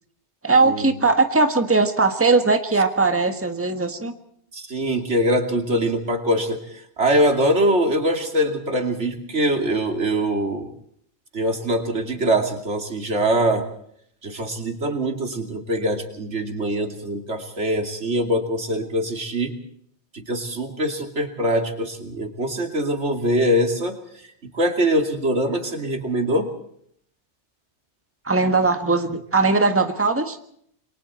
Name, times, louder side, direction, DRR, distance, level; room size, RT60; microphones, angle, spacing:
voice 1, 0.4-4.2 28.2-30.4, right 3 dB, 10° right, 7 dB, 1.5 m, -19 dB
voice 2, 4.5-10.7 11.3-13.7 14.2-19.6 20.1-24.0 24.5-26.5, right 1 dB, 80° right, 5 dB, 3.0 m, -23 dB
28.5 x 22.5 x 4.4 m, 0.66 s
omnidirectional pair, 1.2 m